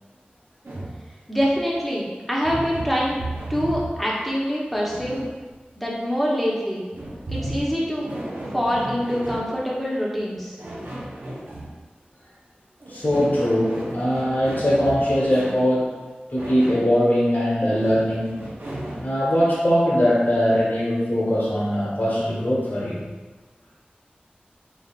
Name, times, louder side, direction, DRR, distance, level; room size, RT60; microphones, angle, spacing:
sound 1, 0.6-1.0 2.4-4.1 4.8-5.6 6.9-9.6 10.6-11.7 12.8-15.7 16.4-16.9 17.7-19.1, right 1 dB, 85° right, 0.8 m, -34 dB
voice 1, 1.3-3.2 3.5-5.2 5.8-6.9 7.3-8.1 8.5-10.6, equal, ahead, -5 dB, 1.0 m, -25 dB
voice 2, 12.9-15.9 16.3-18.4 19.0-23.1, equal, 65° left, -8 dB, 1.2 m, -21 dB
3.6 x 3.4 x 2.5 m, 1.3 s
wide cardioid pair, 40°, 3 cm